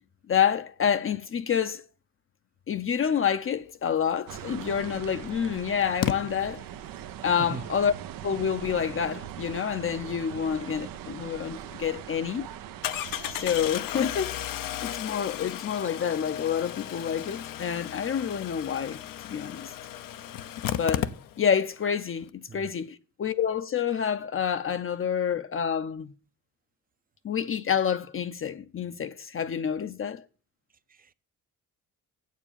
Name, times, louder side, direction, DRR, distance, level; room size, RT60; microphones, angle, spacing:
voice 1, 0.3-1.8 2.7-6.7 7.2-7.9 8.2-12.5 13.3-14.4 14.8-19.0 19.3-19.7 20.7-26.1 27.2-30.3, left 8 dB, 40° left, 0.6 m, -28 dB
sound 1, 4.3-13.8, right 11 dB, 85° right, 0.7 m, -41 dB
Engine starting, 4.5-4.6 6.0-6.2 11.2-11.3 11.7-11.8 12.8-21.6 21.9-22.0 22.2-22.3, left 11 dB, 80° left, 0.7 m, -34 dB
voice 2, 7.4-7.7 22.5-22.7 30.9-31.1, right 5 dB, 25° right, 0.5 m, -39 dB
7.9 x 7.4 x 7.1 m
cardioid pair, 95°, 33 cm